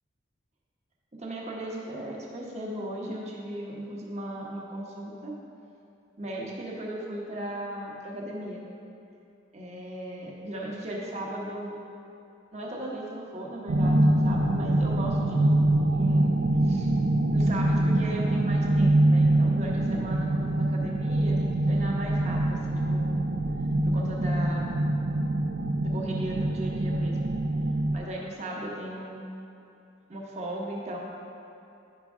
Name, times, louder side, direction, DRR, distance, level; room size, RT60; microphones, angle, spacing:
voice 1, 1.1-5.3 6.2-8.6 9.5-11.7 12.5-15.5 15.9-16.3 16.6-16.9 17.3-23.2 23.8-24.7 25.8-27.3 27.9-29.3 30.1-31.0, right 1 dB, 35° right, -3 dB, 1.0 m, -37 dB
sound 1, 13.7-28.0, right 1 dB, 60° right, 0.4 m, -24 dB
9.6 x 5.2 x 3.6 m, 2.7 s
head